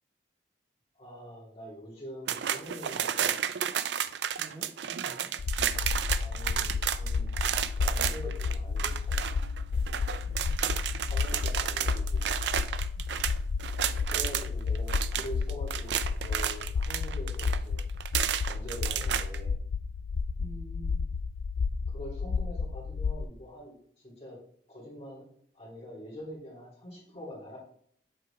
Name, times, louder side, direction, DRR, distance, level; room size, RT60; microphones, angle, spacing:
voice 1, 1.0-3.4 6.2-7.3 7.8-9.5 11.1-12.4 14.1-17.8 18.5-19.5 21.9-23.7 24.0-24.4 24.7-25.3 25.5-27.6, equal, 35° left, -4 dB, 2.8 m, -44 dB
sound 1, 2.3-14.5 14.8-19.4, right 9 dB, 80° right, 0.4 m, -32 dB
voice 2, 4.4-5.3 10.2-11.2 13.0-13.3 20.4-21.1, right 2 dB, 30° right, 0 dB, 1.2 m, -49 dB
sound 2, 5.4-23.2, left 5 dB, 75° left, 0.4 m, -32 dB
7.8 x 4.7 x 3.3 m, 0.62 s
head